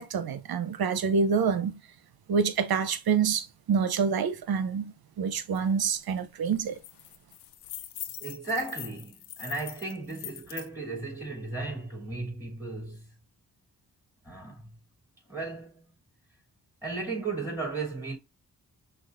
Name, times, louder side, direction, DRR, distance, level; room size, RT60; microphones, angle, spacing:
voice 1, 0.0-1.7 2.3-6.7, right 6 dB, 65° right, 0.8 m, -27 dB
sound 1, 5.5-5.6 6.0-6.2 6.5-10.7, left 11 dB, 90° left, 0.6 m, -42 dB
voice 2, 8.2-13.1 14.2-14.7 15.3-15.8 16.8-18.2, right 3 dB, 5° right, 2.8 m, -35 dB
5.9 x 2.4 x 2.5 m
supercardioid pair, 45°, 39 cm